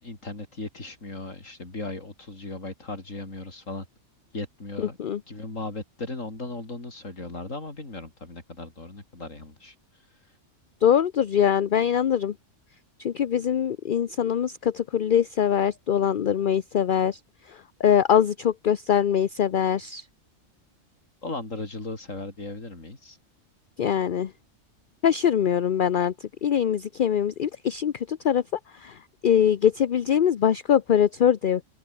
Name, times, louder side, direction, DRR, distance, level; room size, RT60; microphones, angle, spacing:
voice 1, 0.0-3.9 4.3-5.0 5.3-9.7 21.2-23.2, left 2 dB, 85° left, 5.0 m, -37 dB
voice 2, 4.8-5.2 10.8-12.3 13.0-17.2 17.8-20.0 23.8-24.3 25.0-28.4 28.7-29.0 29.2-31.6, left 9 dB, 50° left, 0.7 m, -23 dB
open air
omnidirectional pair, 1.3 m